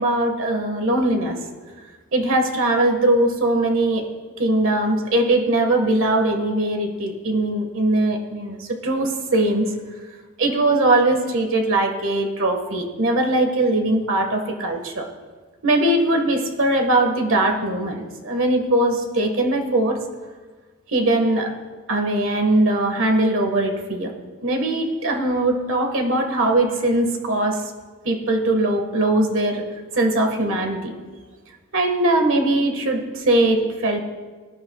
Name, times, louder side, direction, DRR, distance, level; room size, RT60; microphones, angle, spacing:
voice 1, 0.0-1.5 2.1-4.0 4.4-9.7 10.4-15.1 15.6-20.0 20.9-21.5 21.9-24.1 24.4-27.6 28.0-29.6 29.9-30.9 31.7-34.0, right 1 dB, 65° right, 3 dB, 1.6 m, -20 dB
23.0 x 11.5 x 2.4 m, 1.4 s
head